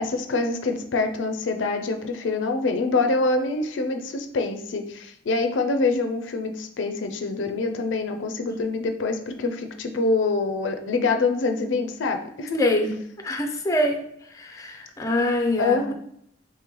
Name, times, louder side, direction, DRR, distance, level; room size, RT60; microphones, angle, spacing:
voice 1, 0.0-12.7 15.6-15.9, left 3 dB, 80° left, 6 dB, 0.4 m, -25 dB
voice 2, 12.6-13.0 13.2-14.0 14.3-15.8, left 1 dB, 20° left, 3 dB, 0.4 m, -24 dB
3.7 x 3.1 x 3.0 m, 0.71 s
head